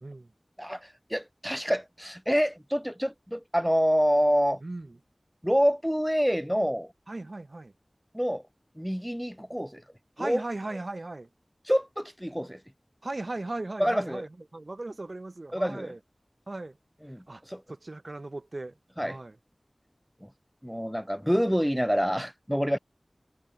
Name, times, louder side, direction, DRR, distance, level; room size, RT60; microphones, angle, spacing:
voice 1, 0.0-0.3 4.6-5.0 7.1-7.7 10.2-11.3 13.0-16.0 16.5-16.8 17.3-17.4 17.7-19.4, right 2 dB, 60° right, 1.2 m, -37 dB
voice 2, 0.6-4.6 5.4-6.9 8.1-8.4 8.8-9.8 10.2-10.4 11.7-12.6 13.8-14.2 15.5-15.9 17.1-17.2 17.5-17.6 19.0-19.2 20.6-22.8, equal, ahead, 0.4 m, -27 dB
wide cardioid pair, 50°, 0 cm